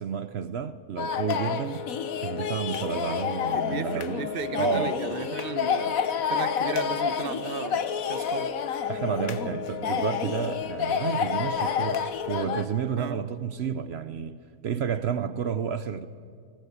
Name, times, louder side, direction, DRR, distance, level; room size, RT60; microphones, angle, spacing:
voice 1, 0.0-1.8 2.2-4.3 4.6-5.0 8.9-16.1, right 7 dB, 60° right, 0.7 m, -31 dB
sound 1, 1.0-12.7, left 7 dB, 60° left, 1.3 m, -29 dB
voice 2, 3.5-6.0 6.3-8.5 13.0-13.2, right 6 dB, 45° right, 0.9 m, -35 dB
19.0 x 17.0 x 8.2 m
omnidirectional pair, 1.8 m